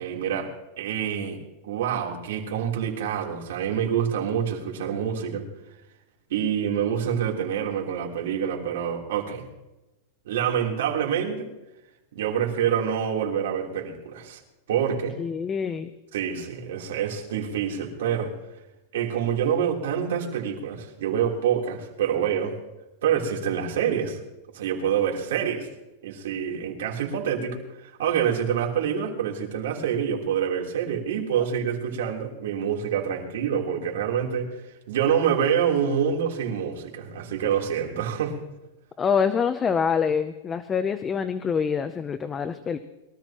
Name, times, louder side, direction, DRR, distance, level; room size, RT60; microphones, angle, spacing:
voice 1, 0.0-1.4 1.6-5.5 6.3-9.5 10.3-11.5 12.2-14.4 14.7-15.2 16.1-18.3 18.9-22.5 23.0-24.2 24.5-25.7 26.0-34.6 34.9-38.4, right 8 dB, 80° right, 0 dB, 3.5 m, -26 dB
voice 2, 15.2-15.9 39.0-42.8, left 6 dB, 15° left, 10 dB, 0.6 m, -25 dB
23.0 x 14.0 x 3.0 m, 1.0 s
supercardioid pair, 155°, 0 cm